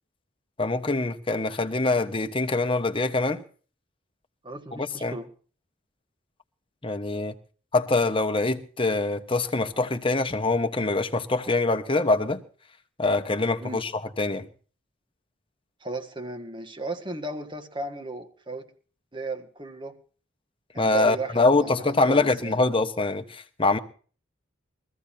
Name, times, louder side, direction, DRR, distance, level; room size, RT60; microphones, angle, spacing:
voice 1, 0.6-3.4 4.7-5.2 6.8-7.3 7.7-12.4 13.0-13.9 14.2-14.5 20.8-23.8, left 2 dB, 25° left, 1.2 m, -24 dB
voice 2, 4.4-5.3 13.6-13.8 15.8-18.7 19.1-20.0 20.7-22.6, right 2 dB, 25° right, 1.7 m, -35 dB
23.0 x 15.0 x 2.8 m
head